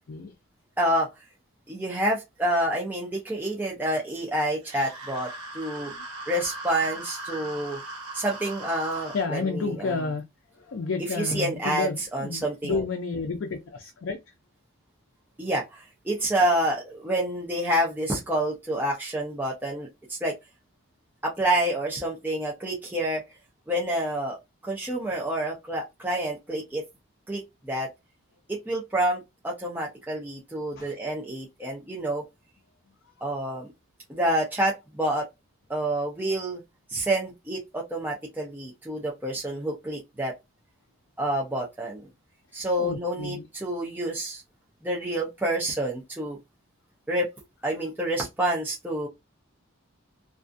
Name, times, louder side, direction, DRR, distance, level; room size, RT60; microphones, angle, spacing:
voice 1, 0.8-1.2 1.7-5.3 5.5-5.9 6.3-7.8 8.1-9.9 11.2-12.8 15.4-20.3 21.2-23.2 23.7-24.4 24.6-26.8 27.3-27.9 28.5-32.2 33.2-33.7 34.1-35.3 35.7-36.6 36.9-40.3 41.2-42.1 42.5-44.4 44.8-46.4 47.1-47.3 47.6-49.1, right 1 dB, 10° right, 0.4 m, -28 dB
sound 1, 4.6-9.3, right 2 dB, 85° right, 0.8 m, -39 dB
voice 2, 5.7-6.1 8.8-10.2 10.5-14.3 30.8-30.9 33.0-33.4 42.8-43.5, left 4 dB, 55° left, 0.4 m, -31 dB
2.4 x 2.3 x 2.5 m
head